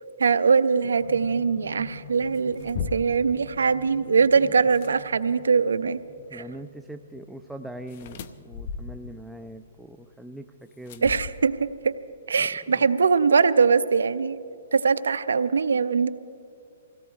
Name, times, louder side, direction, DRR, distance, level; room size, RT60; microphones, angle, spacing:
voice 1, 0.2-6.0 6.3-6.4 11.0-11.9 12.3-14.4 14.7-16.1, right 5 dB, 85° right, 14 dB, 0.5 m, -22 dB
sound 1, 1.0-13.1 14.1-14.2, left 3 dB, 70° left, 1.3 m, -48 dB
sound 2, 2.3-3.3 4.6-4.9 7.9-9.2 10.9-11.7, left 6 dB, 50° left, 0.7 m, -36 dB
voice 2, 6.3-11.2 12.4-12.9, right 1 dB, 5° right, 6 dB, 0.4 m, -42 dB
26.0 x 17.0 x 2.4 m, 2.4 s
hypercardioid pair, 140°, 0 cm